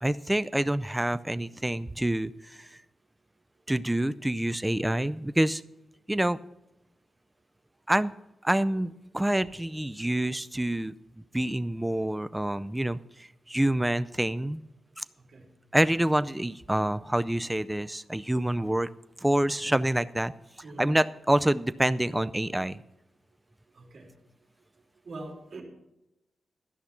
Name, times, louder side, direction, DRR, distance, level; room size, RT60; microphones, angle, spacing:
voice 1, 0.0-2.7 3.7-5.6 6.1-6.4 7.9-8.1 8.4-10.9 11.3-14.6 15.0-15.1 15.7-18.9 19.2-20.3 20.8-22.8, right 1 dB, 10° right, 13 dB, 0.4 m, -27 dB
voice 2, 15.1-15.5 20.6-21.0 23.7-24.1 25.0-25.6, right 2 dB, 50° right, 1 dB, 3.2 m, -43 dB
13.5 x 5.8 x 8.3 m, 0.89 s
wide cardioid pair, 120°, 0 cm